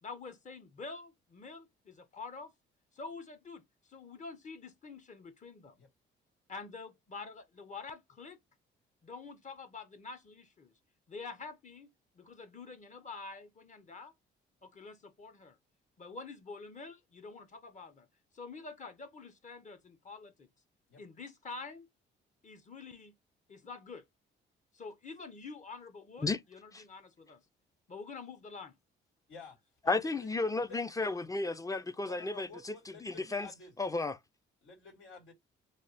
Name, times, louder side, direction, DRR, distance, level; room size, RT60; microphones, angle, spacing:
voice 1, 0.0-2.5 2.9-3.6 3.9-5.8 6.5-8.4 9.0-10.7 11.1-11.9 12.1-14.1 14.6-15.6 16.0-18.1 18.3-20.5 21.0-21.9 22.4-23.1 23.5-24.0 24.7-27.4 27.9-28.8, left 4 dB, 40° left, 0.8 m, -47 dB
voice 2, 29.3-29.9 30.2-30.3 30.7-31.1 32.0-33.7 34.6-35.3, left 4 dB, 85° left, 2.2 m, -52 dB
voice 3, 29.9-32.7 33.0-33.5 33.8-34.2, left 3 dB, 15° left, 0.5 m, -33 dB
3.3 x 2.3 x 4.1 m
cardioid pair, 90°, 20 cm